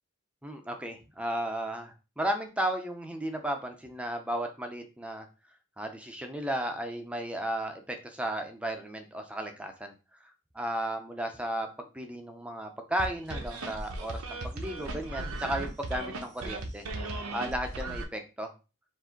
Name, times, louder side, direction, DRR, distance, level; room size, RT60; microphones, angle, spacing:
voice 1, 0.4-5.3 5.8-9.9 10.5-16.8 17.3-18.5, right 1 dB, 5° right, 5 dB, 0.6 m, -34 dB
sound 1, 13.0-18.0, right 2 dB, 85° right, 0.9 m, -36 dB
4.9 x 2.6 x 3.8 m, 0.30 s
head